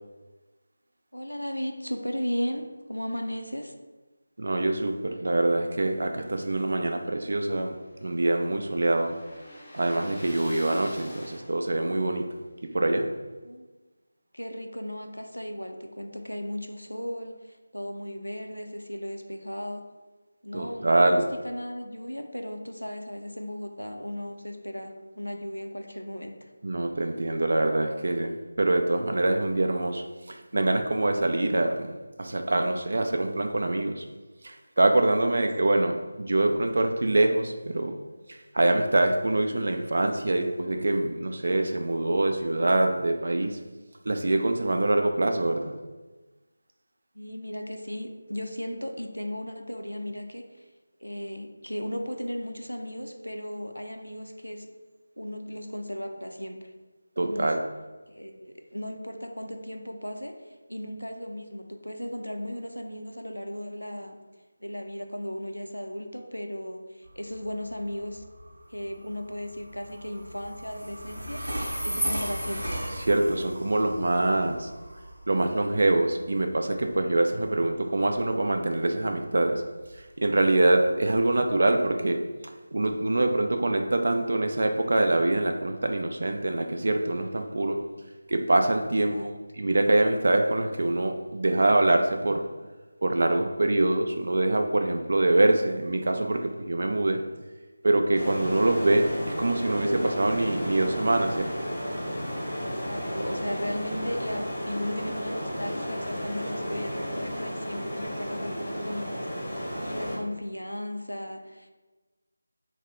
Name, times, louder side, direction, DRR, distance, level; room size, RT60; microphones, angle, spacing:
voice 1, 1.1-3.7 13.4-13.6 14.3-19.8 20.4-26.5 35.3-35.5 47.1-50.7 51.0-54.7 55.2-56.7 57.2-57.5 58.1-64.2 64.6-68.2 68.7-71.4 71.8-72.7 89.1-89.3 102.6-111.7, equal, 90° left, 5 dB, 0.4 m, -36 dB
voice 2, 4.4-9.1 9.7-12.3 12.7-13.1 20.5-21.3 26.6-31.9 32.2-34.0 34.4-37.9 38.3-43.6 44.1-45.6 57.2-57.6 73.1-74.7 75.3-79.6 80.2-82.2 82.7-87.8 88.3-92.4 93.0-97.2 97.8-101.4, right 2 dB, 55° right, 4 dB, 0.3 m, -24 dB
sound 1, 6.6-11.9, left 1 dB, 20° left, 0.6 m, -47 dB
Train, 67.0-81.8, equal, 70° right, 0.7 m, -37 dB
sound 2, 98.2-110.1, equal, 5° left, 0.9 m, -33 dB
2.7 x 2.0 x 3.5 m, 1.2 s
figure-of-eight pair, 165°, 0 cm